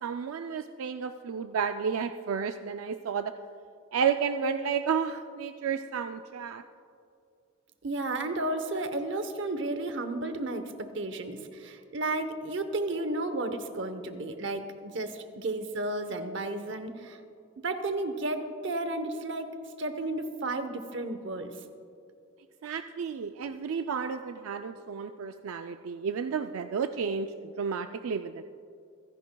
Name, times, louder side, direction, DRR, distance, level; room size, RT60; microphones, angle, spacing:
voice 1, 0.0-3.3 3.9-6.6 22.6-28.4, right 6 dB, 85° right, 8 dB, 0.4 m, -32 dB
voice 2, 7.8-17.2 17.6-19.5 19.8-21.5, right 2 dB, 60° right, 8 dB, 0.9 m, -33 dB
28.5 x 10.5 x 2.3 m, 2.4 s
head